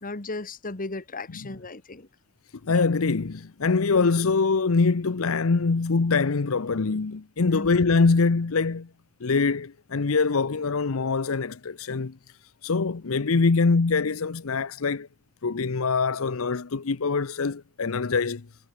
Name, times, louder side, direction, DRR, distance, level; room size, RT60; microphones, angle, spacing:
voice 1, 0.0-2.1 7.5-7.7, left 2 dB, 40° left, 1.7 m, -35 dB
voice 2, 2.6-8.9 9.2-12.2 12.6-15.1 15.4-18.5, left 4 dB, 70° left, 0.7 m, -24 dB
head